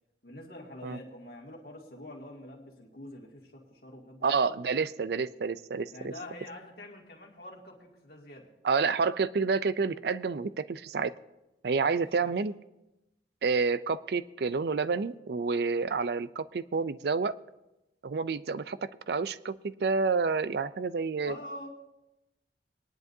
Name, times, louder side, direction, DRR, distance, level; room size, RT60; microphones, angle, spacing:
voice 1, 0.2-4.6 5.9-8.5 11.7-12.3 21.3-21.7, left 1 dB, 55° left, -1 dB, 2.3 m, -46 dB
voice 2, 4.2-6.1 8.6-11.2 11.6-12.5 13.4-17.4 18.0-21.4, right 4 dB, 60° right, 15 dB, 0.4 m, -29 dB
22.0 x 10.5 x 2.7 m, 0.96 s
head